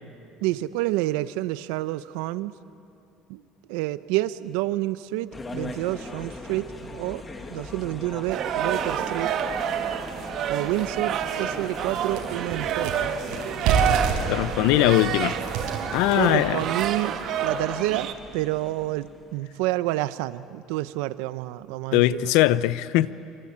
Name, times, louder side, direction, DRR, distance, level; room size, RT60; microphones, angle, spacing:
voice 1, 0.4-2.5 3.3-3.4 3.7-7.2 7.5-9.3 10.5-13.1 16.2-22.3, right 17 dB, 90° right, 15 dB, 0.8 m, -29 dB
sound 1, 5.3-19.5, left 2 dB, 20° left, 2.1 m, -40 dB
sound 2, 8.3-18.1, right 8 dB, 50° right, 1.6 m, -28 dB
sound 3, 10.0-10.1 10.6-10.7 11.1-17.1, right 6 dB, 70° right, 5.1 m, -30 dB
voice 2, 14.3-15.3 15.9-16.6 21.9-23.1, left 16 dB, 80° left, 17 dB, 0.8 m, -21 dB
27.5 x 24.5 x 8.8 m, 2.6 s
cardioid pair, 145°, 0 cm